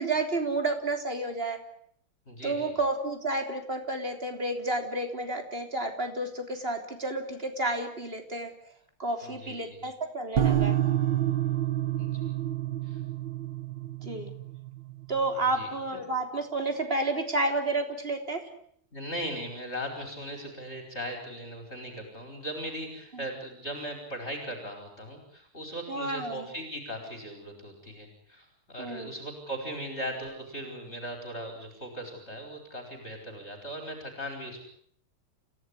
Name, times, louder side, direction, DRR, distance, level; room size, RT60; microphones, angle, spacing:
voice 1, 0.0-1.6 2.4-8.5 9.0-10.8 14.0-14.3 15.1-18.5 23.1-23.2 25.9-26.5 28.8-29.1, right 2 dB, 25° right, 5 dB, 3.6 m, -31 dB
voice 2, 2.3-2.7 9.2-9.8 12.0-12.4 12.8-13.0 15.6-16.0 18.9-34.6, equal, 30° left, 4 dB, 5.3 m, -38 dB
sound 1, 10.4-15.6, right 12 dB, 60° right, 2.0 m, -29 dB
29.5 x 16.5 x 9.8 m, 0.67 s
omnidirectional pair, 2.3 m